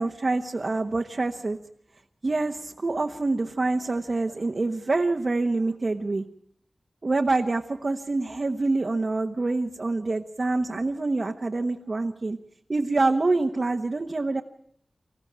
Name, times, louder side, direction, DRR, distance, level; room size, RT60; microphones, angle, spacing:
voice 1, 0.0-1.6 2.2-6.2 7.0-12.4 12.7-14.4, right 3 dB, 55° right, 3 dB, 1.2 m, -26 dB
25.5 x 15.0 x 8.7 m, 0.67 s
wide cardioid pair, 90°, 0 cm